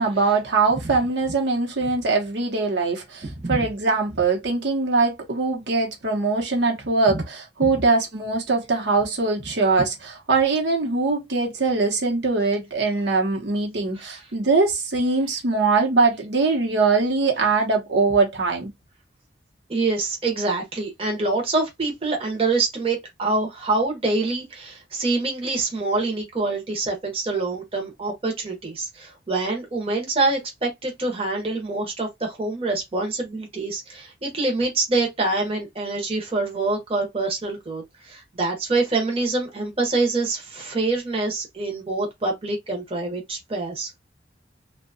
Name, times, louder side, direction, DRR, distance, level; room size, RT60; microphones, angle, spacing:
voice 1, 0.0-18.7, right 3 dB, 75° right, 0.9 m, -22 dB
voice 2, 3.2-3.7 7.1-7.2 7.6-7.7 14.0-14.2 19.7-43.9, right 3 dB, 30° right, 0.7 m, -25 dB
2.7 x 2.2 x 2.6 m
head